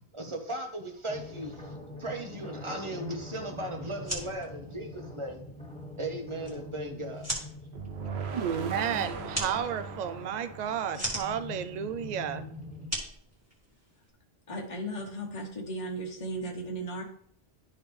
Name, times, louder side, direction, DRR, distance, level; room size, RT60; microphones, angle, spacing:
voice 1, 0.0-1.7 2.0-5.4 6.0-7.3, right 1 dB, 30° right, 3 dB, 1.0 m, -37 dB
sound 1, 1.1-12.9, left 2 dB, 5° left, 1.0 m, -45 dB
sound 2, 3.9-14.1, right 1 dB, 15° right, 1.8 m, -40 dB
sound 3, 7.7-11.8, right 4 dB, 70° right, 1.0 m, -39 dB
voice 2, 8.3-12.5, right 8 dB, 50° right, 11 dB, 0.5 m, -32 dB
voice 3, 14.5-17.0, right 1 dB, 30° left, -1 dB, 1.2 m, -36 dB
11.5 x 4.1 x 3.4 m, 0.63 s
omnidirectional pair, 1.1 m